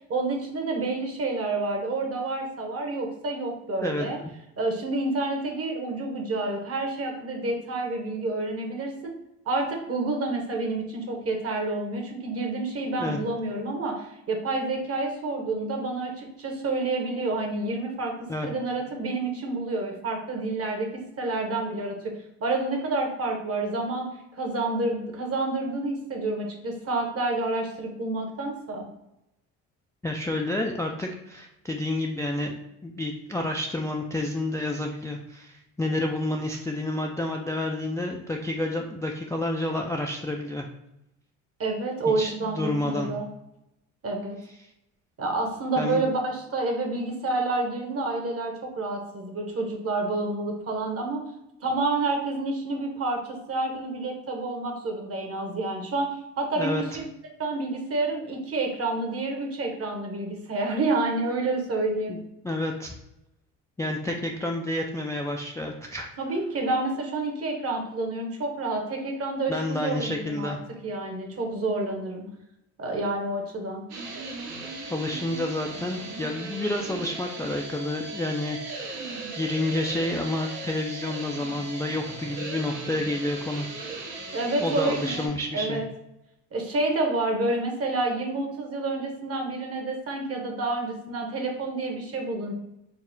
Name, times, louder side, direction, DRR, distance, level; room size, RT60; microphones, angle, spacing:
voice 1, 0.1-4.2 4.6-8.9 9.5-18.1 18.4-22.1 22.4-24.1 24.4-28.9 41.6-43.3 44.0-44.4 45.2-51.2 51.6-57.0 57.4-62.2 66.2-70.6 70.8-72.2 72.8-73.8 84.3-85.9 86.5-92.5, right 2 dB, 40° right, 2 dB, 1.1 m, -29 dB
voice 2, 30.0-32.5 32.8-40.7 42.2-43.1 45.8-46.0 56.6-56.8 62.1-62.2 62.4-63.0 63.8-66.1 69.5-70.6 74.9-79.1 79.3-83.9 84.6-85.8, left 1 dB, 10° left, 1 dB, 0.3 m, -29 dB
sound 1, 73.9-85.3, right 3 dB, 70° right, 0.9 m, -37 dB
4.0 x 2.1 x 3.9 m, 0.85 s
supercardioid pair, 75°, 35 cm